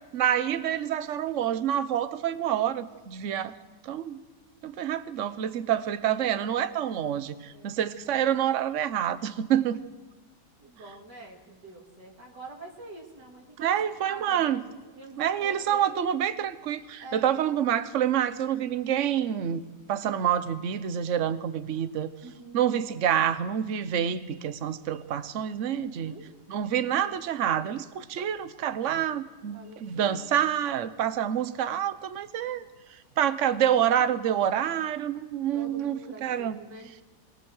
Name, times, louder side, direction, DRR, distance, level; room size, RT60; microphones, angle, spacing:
voice 1, 0.1-3.5 3.8-4.2 4.6-9.8 13.6-14.6 15.2-19.6 19.9-22.1 22.5-26.1 26.5-36.6, right 10 dB, 55° right, 13 dB, 1.1 m, -27 dB
voice 2, 10.6-16.2 17.0-17.3 22.2-22.6 25.7-26.3 29.5-30.4 34.0-34.1 35.5-37.0, right 2 dB, 80° right, -1 dB, 3.4 m, -46 dB
23.0 x 18.5 x 6.4 m, 1.2 s
omnidirectional pair, 1.8 m